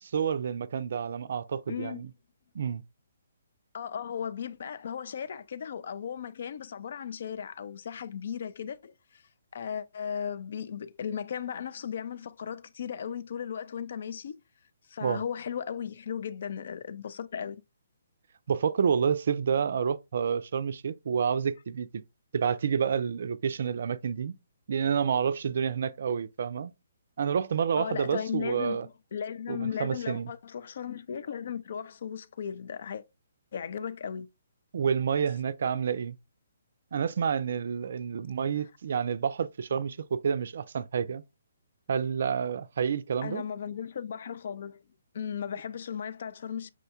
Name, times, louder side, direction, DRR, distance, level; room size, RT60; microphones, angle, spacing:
voice 1, 0.1-2.1 2.5-2.8 15.0-15.2 18.5-22.0 22.3-24.3 24.7-26.7 27.2-28.9 29.5-30.3 34.7-36.1 36.9-41.2 41.9-43.4, right 7 dB, 60° right, 0.3 m, -29 dB
voice 2, 1.7-2.0 3.7-9.2 9.5-14.4 14.9-17.6 27.8-33.0 33.5-34.3 43.2-44.8 45.1-46.7, left 8 dB, 55° left, 0.4 m, -36 dB
6.0 x 2.2 x 2.7 m
figure-of-eight pair, 135°, 0 cm